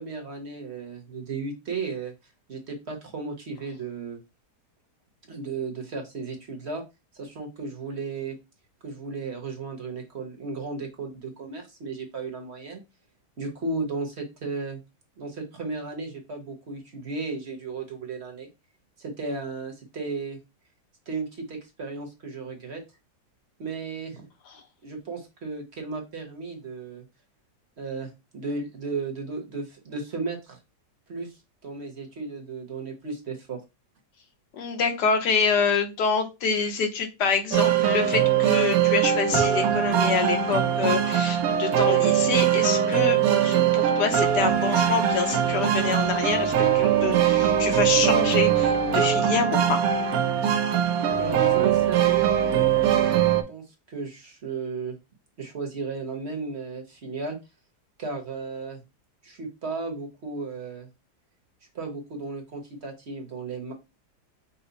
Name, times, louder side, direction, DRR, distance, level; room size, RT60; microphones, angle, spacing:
voice 1, 0.0-2.1 2.5-4.2 5.3-6.8 7.1-8.3 8.8-12.8 13.4-14.8 15.2-18.5 19.0-20.4 21.1-22.8 23.6-24.3 24.8-27.0 27.8-30.6 31.1-33.6 51.1-52.8 53.5-55.0 55.4-57.4 58.0-58.8 59.2-60.9 61.7-63.7, right 4 dB, 45° right, 2 dB, 1.1 m, -34 dB
voice 2, 34.5-49.8, left 5 dB, 80° left, 4 dB, 1.6 m, -26 dB
sound 1, 37.5-53.4, right 9 dB, 70° right, 1.1 m, -22 dB
5.6 x 2.1 x 3.9 m, 0.25 s
omnidirectional pair, 1.8 m